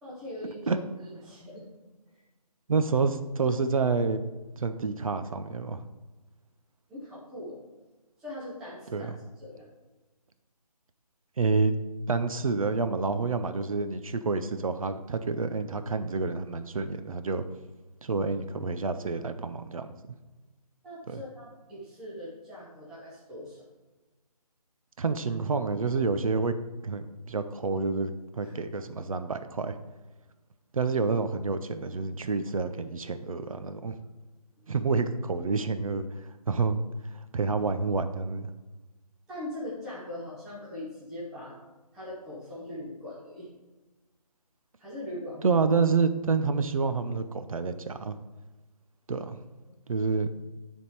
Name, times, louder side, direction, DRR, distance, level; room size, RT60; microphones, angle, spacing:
voice 1, 0.0-1.7 2.1-2.2 6.9-7.6 8.2-9.1 9.4-9.7 20.8-23.6 28.4-28.6 34.6-34.7 39.3-41.6 41.9-43.5 44.8-45.5 49.7-49.8, left 1 dB, ahead, -9 dB, 0.5 m, -41 dB
voice 2, 2.7-4.2 4.6-5.9 8.9-9.1 11.4-11.7 12.1-17.4 18.0-19.9 21.1-21.2 25.0-26.5 26.8-29.8 30.7-34.0 34.7-36.1 36.5-36.8 37.3-38.5 45.4-48.2 49.1-49.4 49.9-50.3, right 4 dB, 60° right, 10 dB, 0.6 m, -28 dB
9.9 x 3.6 x 4.6 m, 1.2 s
figure-of-eight pair, 160°, 20 cm